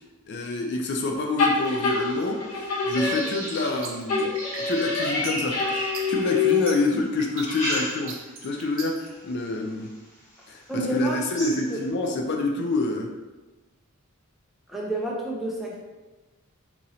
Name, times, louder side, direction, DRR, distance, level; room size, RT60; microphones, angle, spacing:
voice 1, 0.3-4.3 4.7-8.2 8.4-9.9 10.5-13.1, left 2 dB, 50° left, 2 dB, 0.4 m, -27 dB
sound 1, 1.4-3.7 4.1-6.9, left 4 dB, 75° left, 0.8 m, -26 dB
sound 2, 1.6-6.6 7.2-8.4 8.8-9.2 9.8-9.9 10.3-10.4 10.8-11.9, equal, 35° left, 1.3 m, -35 dB
sound 3, 3.5-9.1, right 4 dB, 60° right, 0.6 m, -39 dB
voice 2, 10.7-11.8 14.7-15.8, right 1 dB, ahead, -4 dB, 0.5 m, -29 dB
3.9 x 3.0 x 2.7 m, 1.1 s
head